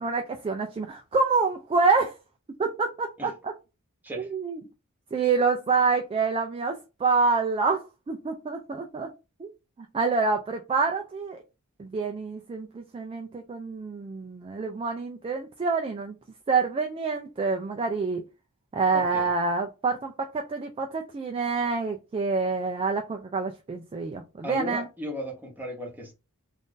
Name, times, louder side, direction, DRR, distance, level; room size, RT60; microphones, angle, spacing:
voice 1, 0.0-2.1 2.6-3.5 4.2-4.6 5.1-9.1 9.4-9.5 9.9-11.4 11.8-16.2 16.5-18.2 18.7-24.8, right 4 dB, 25° right, 0.3 m, -27 dB
voice 2, 18.9-19.3 24.4-26.1, equal, 10° right, 1.0 m, -35 dB
2.5 x 2.5 x 3.6 m
head